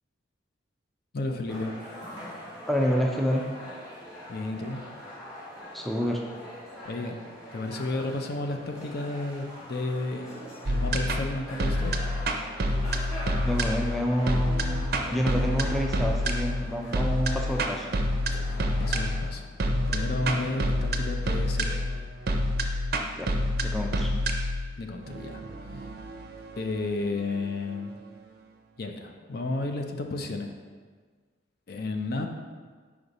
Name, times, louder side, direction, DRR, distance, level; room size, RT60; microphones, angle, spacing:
voice 1, 1.1-1.8 4.3-4.8 6.8-7.2 7.5-11.9 18.3-19.5 19.9-22.0 24.8-25.4 26.5-27.9 28.8-30.5 31.7-32.3, left 2 dB, 55° left, 4 dB, 0.5 m, -32 dB
sound 1, 1.5-19.2, equal, 20° left, 1.8 m, -43 dB
voice 2, 2.7-3.5 5.7-6.2 13.4-14.6 15.1-17.9 23.2-23.3 23.6-24.1, equal, ahead, 0 dB, 0.3 m, -27 dB
sound 2, 10.7-27.8, equal, 55° right, 0.5 m, -28 dB
5.2 x 5.0 x 4.0 m, 1.5 s
head